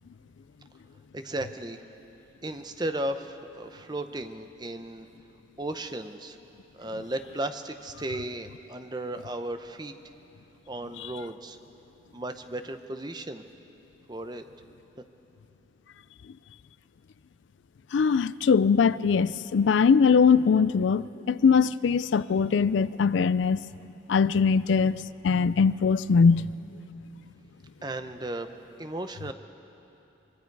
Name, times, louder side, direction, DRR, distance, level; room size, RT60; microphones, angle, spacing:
voice 1, 1.1-1.8 2.4-5.1 5.6-6.4 6.7-9.9 10.7-11.6 12.1-13.4 14.1-14.4 27.8-29.3, right 1 dB, 20° right, 0.7 m, -35 dB
voice 2, 17.9-23.6 24.1-26.5, left 5 dB, 75° left, 0.4 m, -22 dB
25.0 x 23.0 x 4.7 m
head